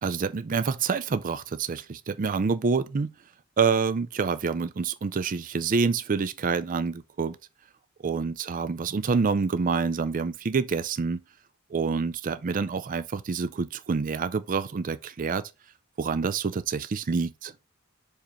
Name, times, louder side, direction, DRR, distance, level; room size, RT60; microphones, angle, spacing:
voice 1, 0.0-3.1 3.6-7.4 8.0-11.2 11.7-15.5 16.0-17.5, right 5 dB, 40° right, 0.4 m, -27 dB
5.1 x 4.3 x 5.0 m
head